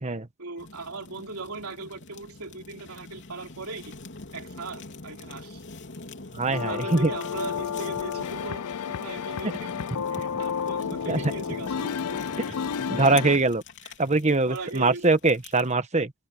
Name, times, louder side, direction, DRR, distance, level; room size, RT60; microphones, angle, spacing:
voice 1, 0.4-4.0 4.3-5.6 6.5-9.7 10.1-12.2 13.8-13.9 14.4-15.2, right 3 dB, 75° right, 3.3 m, -39 dB
Fire, 0.6-15.7, left 2 dB, 55° left, 3.5 m, -42 dB
voice 2, 6.3-7.1 9.4-9.5 11.1-11.2 12.9-13.6 14.0-16.1, right 3 dB, 30° right, 1.3 m, -22 dB
sound 1, 6.5-13.4, left 7 dB, 90° left, 0.5 m, -31 dB
open air
head